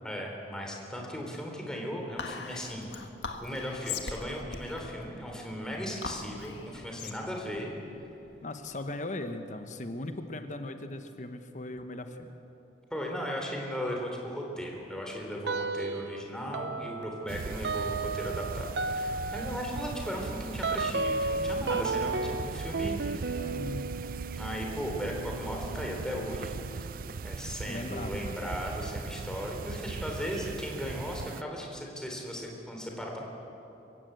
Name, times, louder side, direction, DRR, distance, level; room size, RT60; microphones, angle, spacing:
voice 1, 0.0-3.0 3.4-7.7 12.9-23.5 24.4-26.9 27.2-33.2, equal, 5° left, 0 dB, 3.6 m, -37 dB
Whispering, 2.2-8.8, left 5 dB, 85° left, 1.7 m, -41 dB
voice 2, 8.4-12.3 23.3-23.9 27.6-28.4, left 2 dB, 45° left, 7 dB, 1.1 m, -38 dB
sound 1, 15.4-16.2 16.5-26.9, right 3 dB, 70° right, 0.8 m, -34 dB
sound 2, 17.3-31.4, right 4 dB, 50° right, 0.4 m, -39 dB
26.0 x 16.0 x 8.0 m, 2.9 s
head